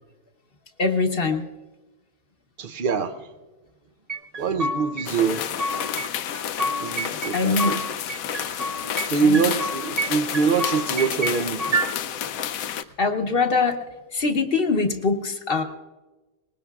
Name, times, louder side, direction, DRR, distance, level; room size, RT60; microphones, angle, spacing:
voice 1, 0.8-1.5 7.3-7.8 9.2-9.4 13.0-13.8 14.1-15.6, left 4 dB, 45° left, 1.0 m, -23 dB
voice 2, 2.6-3.3 4.4-5.5 6.8-7.8 9.1-11.8, right 5 dB, 55° right, 0.6 m, -24 dB
sound 1, 4.1-5.1 5.3-6.1 6.3-7.8 8.1-9.1 9.3-10.1 10.3-11.9, right 1 dB, 30° right, 1.0 m, -28 dB
sound 2, 5.1-12.8, left 9 dB, 75° left, 1.0 m, -30 dB
22.5 x 19.5 x 2.4 m
omnidirectional pair, 1.6 m